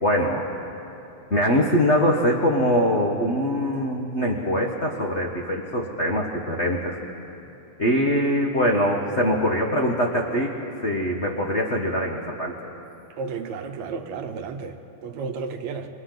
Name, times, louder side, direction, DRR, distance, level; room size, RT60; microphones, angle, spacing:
voice 1, 0.0-0.4 1.3-7.0 7.8-10.5 10.8-12.5, equal, 55° left, 0 dB, 0.7 m, -23 dB
voice 2, 13.2-14.8 15.0-15.9, right 5 dB, 70° right, 7 dB, 2.1 m, -32 dB
27.5 x 25.0 x 4.0 m, 2.9 s
omnidirectional pair, 3.5 m